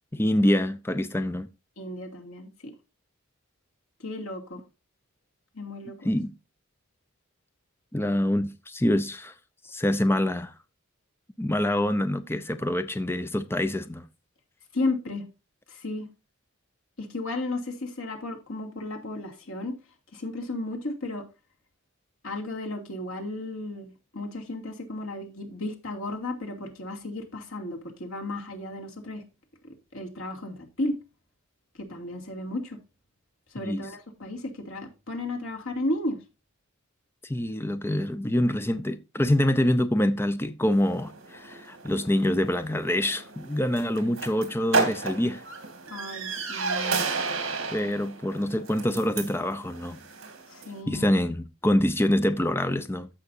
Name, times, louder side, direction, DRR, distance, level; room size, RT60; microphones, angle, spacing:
voice 1, 0.1-1.5 6.0-6.3 7.9-9.3 9.6-10.5 11.4-14.0 33.6-33.9 37.2-45.4 47.7-50.0 50.9-53.1, left 1 dB, 10° left, 0.5 m, -25 dB
voice 2, 1.8-2.7 4.0-4.6 5.5-6.0 14.7-15.3 15.7-16.1 17.0-19.7 20.1-21.2 22.2-29.2 29.9-30.9 31.8-32.8 33.5-36.2 45.9-47.0 50.5-51.1, left 2 dB, 75° left, 2.6 m, -34 dB
sound 1, 40.7-50.8, right 4 dB, 65° right, 2.5 m, -33 dB
15.0 x 5.9 x 2.7 m
head